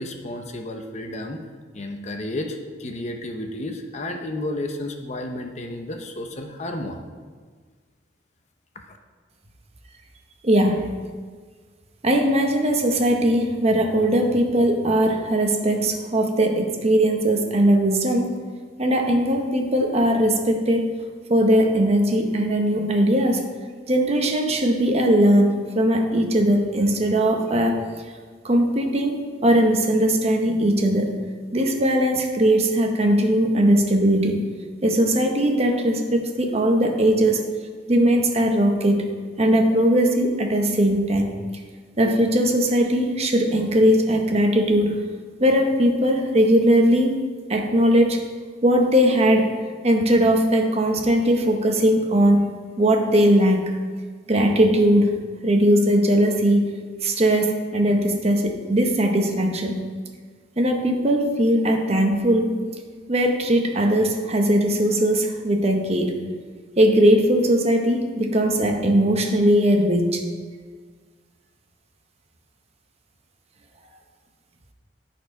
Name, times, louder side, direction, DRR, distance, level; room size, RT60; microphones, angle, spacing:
voice 1, 0.0-1.4 1.7-7.0 8.9-9.0, left 1 dB, 35° left, 4 dB, 0.6 m, -32 dB
voice 2, 10.4-11.0 12.0-18.4 18.8-20.9 21.3-23.5 23.9-27.8 28.4-31.2 31.5-34.4 34.8-37.4 37.9-39.1 39.4-41.3 42.0-45.0 45.4-47.2 47.5-48.2 48.6-49.5 49.8-53.8 54.3-55.1 55.4-56.6 57.0-59.8 60.6-62.6 63.1-66.2 66.8-70.2, right 1 dB, 35° right, 3 dB, 0.8 m, -19 dB
11.0 x 4.5 x 5.1 m, 1.5 s
head